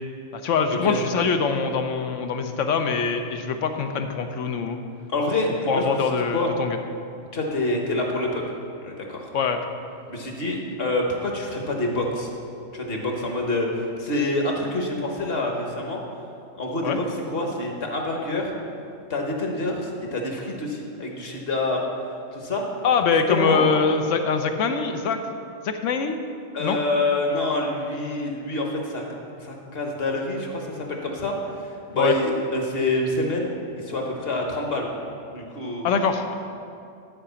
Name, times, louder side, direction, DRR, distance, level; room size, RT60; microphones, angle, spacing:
voice 1, 0.3-4.8 5.7-6.8 9.3-9.6 16.8-17.0 22.8-25.2 25.6-26.2 26.6-26.8 31.9-32.1 35.8-36.3, left 5 dB, 75° left, 7 dB, 1.1 m, -23 dB
voice 2, 5.1-6.0 6.3-6.5 7.3-8.4 8.8-9.3 10.1-12.3 12.7-16.0 16.5-18.5 19.1-21.8 22.3-22.6 23.3-23.6 26.5-29.0 29.4-31.6 31.9-34.9 35.3-35.9, left 2 dB, 50° left, 1 dB, 1.5 m, -26 dB
11.5 x 4.9 x 6.9 m, 2.5 s
omnidirectional pair, 1.3 m